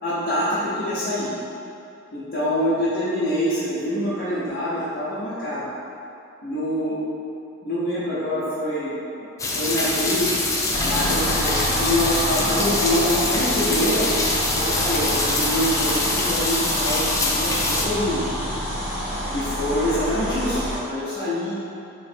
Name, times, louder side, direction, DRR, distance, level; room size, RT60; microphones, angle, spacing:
voice 1, 0.0-1.3 2.1-5.7 6.4-7.0 7.6-9.3 9.6-10.3 10.8-14.1 14.5-18.3 19.3-21.5, left 1 dB, 45° left, -13 dB, 0.8 m, -25 dB
sound 1, 9.4-17.9, left 2 dB, 15° left, 0.3 m, -24 dB
sound 2, 10.7-20.8, equal, 5° right, 1.2 m, -27 dB
3.1 x 3.0 x 4.3 m, 2.7 s
head